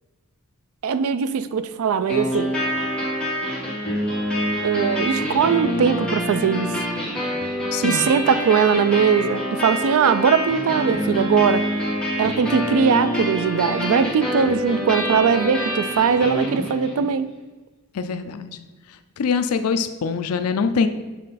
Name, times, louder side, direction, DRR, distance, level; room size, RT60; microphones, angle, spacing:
voice 1, 0.8-2.5 4.6-6.9 7.8-11.6 12.2-17.3, right 6 dB, 65° right, 13 dB, 0.3 m, -20 dB
sound 1, 2.1-17.1, equal, 5° left, 1.8 m, -26 dB
voice 2, 7.7-8.1 17.9-18.5 19.2-20.9, left 5 dB, 80° left, 10 dB, 0.4 m, -23 dB
7.4 x 3.2 x 4.1 m, 1.2 s
head